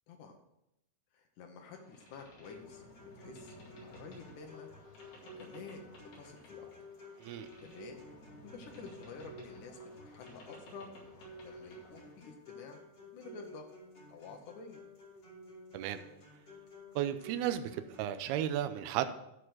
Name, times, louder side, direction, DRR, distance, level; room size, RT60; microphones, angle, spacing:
voice 1, 0.1-0.4 1.1-2.8 3.1-4.7 5.4-6.7 7.6-8.0 8.4-9.8 10.1-10.9 11.4-12.8 13.1-13.7 14.1-14.8, left 4 dB, 90° left, 3 dB, 1.7 m, -50 dB
Boat Water vehicle, 1.7-12.2, equal, 60° left, 3.9 m, -56 dB
sound 1, 2.4-18.4, equal, 35° left, 3.5 m, -53 dB
voice 2, 17.0-19.1, right 11 dB, 85° right, 9 dB, 2.4 m, -34 dB
13.0 x 4.7 x 6.0 m, 0.84 s
omnidirectional pair, 5.0 m